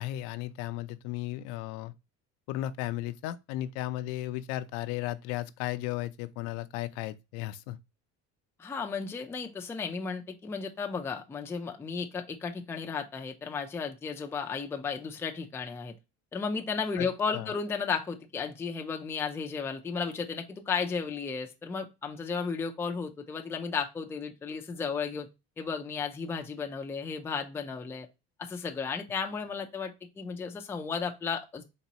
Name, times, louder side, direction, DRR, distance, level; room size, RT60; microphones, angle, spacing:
voice 1, 0.0-1.9 2.5-7.8 17.0-17.1 17.3-17.5, left 15 dB, 80° left, 0.5 m, -35 dB
voice 2, 8.6-16.0 16.3-25.3 25.6-28.1 28.4-31.6, left 5 dB, 10° left, 0.3 m, -34 dB
4.0 x 3.0 x 2.8 m
cardioid pair, 145°, 34 cm